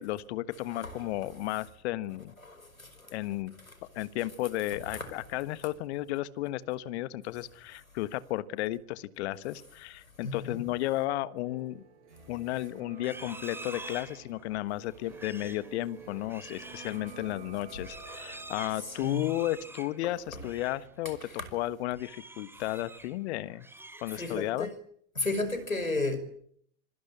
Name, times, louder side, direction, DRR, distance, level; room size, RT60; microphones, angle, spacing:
voice 1, 0.0-2.3 3.1-3.5 3.9-11.8 12.3-21.2 21.5-23.7 24.0-24.7, left 15 dB, 55° left, 1.4 m, -33 dB
voice 2, 0.6-1.1 2.4-3.1 4.7-5.1 10.2-10.7 18.0-18.3 18.7-19.2 20.3-20.4 21.0-21.5 24.1-24.7 25.2-26.2, left 2 dB, 85° left, 5.5 m, -34 dB
sound 1, 11.4-23.2 23.4-23.5, right 5 dB, 60° right, 7.1 m, -52 dB
Livestock farm animals working animals, 12.9-20.9 21.2-21.5 21.9-23.2 23.5-24.6, right 2 dB, 5° right, 2.7 m, -47 dB
26.5 x 20.5 x 8.6 m
figure-of-eight pair, 80°, 40 cm